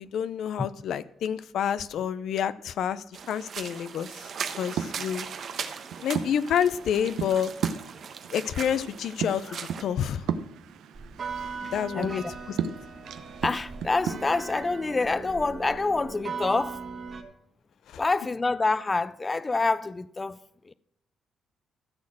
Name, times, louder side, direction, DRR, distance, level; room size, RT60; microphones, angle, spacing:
voice 1, 0.0-4.3 4.6-5.3 6.0-7.5 8.3-10.3 11.6-12.6 17.9-18.0, left 8 dB, 70° left, 0.6 m, -29 dB
sound 1, 3.1-9.8, right 6 dB, 60° right, 1.2 m, -39 dB
sound 2, 4.2-14.1, right 8 dB, 80° right, 0.8 m, -36 dB
sound 3, 11.0-17.2, right 5 dB, 40° right, 2.0 m, -38 dB
voice 2, 11.6-12.2 13.4-16.8 18.0-20.4 20.6-20.7, left 3 dB, 25° left, 0.4 m, -27 dB
14.0 x 6.5 x 7.3 m
cardioid pair, 90°, 0 cm